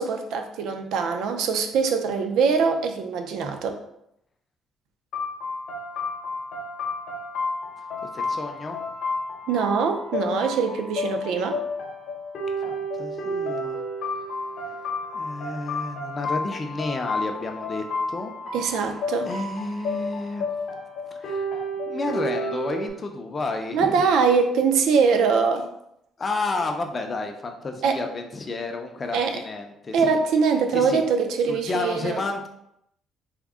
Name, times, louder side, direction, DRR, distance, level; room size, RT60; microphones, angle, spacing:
voice 1, 0.0-3.8 9.5-11.6 18.5-19.3 23.7-25.7 27.8-28.0 29.1-29.4 29.9-32.2, right 5 dB, 80° right, 6 dB, 0.4 m, -23 dB
sound 1, 5.1-22.9, left 2 dB, 60° left, 0.8 m, -31 dB
voice 2, 8.0-8.8 12.7-13.8 14.7-14.8 15.1-18.3 18.6-19.0 19.2-20.5 21.1-24.0 26.2-30.2 30.7-31.0 31.5-32.5, left 3 dB, 25° left, 4 dB, 0.4 m, -31 dB
3.5 x 2.0 x 3.5 m, 0.78 s
cardioid pair, 160°, 0 cm